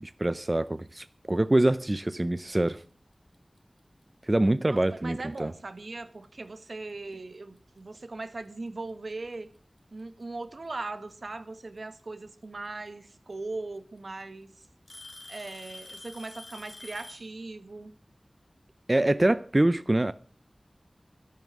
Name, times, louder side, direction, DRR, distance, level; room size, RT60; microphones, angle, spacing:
voice 1, 0.0-2.8 4.3-5.5 18.9-20.1, right 1 dB, 30° right, 0.5 m, -25 dB
Alarm / Tick-tock, 3.3-3.6 4.5-4.6 5.3-5.4 7.1-7.2 8.5-8.6 9.8-10.2 12.0-12.1 13.3-13.4 13.8-14.2 14.9-17.3, left 2 dB, 45° left, 4.6 m, -46 dB
voice 2, 4.7-9.5 9.9-14.7 15.3-17.9, right 3 dB, 75° right, 1.5 m, -39 dB
13.0 x 11.0 x 6.3 m
wide cardioid pair, 65°, 0 cm